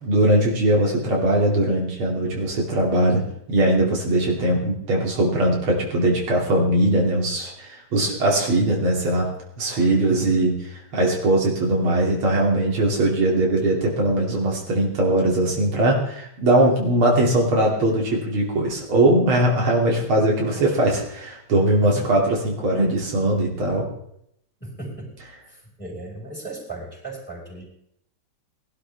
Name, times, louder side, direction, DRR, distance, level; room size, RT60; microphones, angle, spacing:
voice 1, 0.0-3.2 3.5-9.3 9.6-10.6 10.9-23.9, right 1 dB, 80° right, -2 dB, 3.5 m, -20 dB
voice 2, 10.1-10.5 21.8-22.1 24.6-25.1 25.5-27.6, right 2 dB, 5° left, -3 dB, 5.3 m, -36 dB
21.0 x 12.0 x 3.5 m, 0.73 s
omnidirectional pair, 2.3 m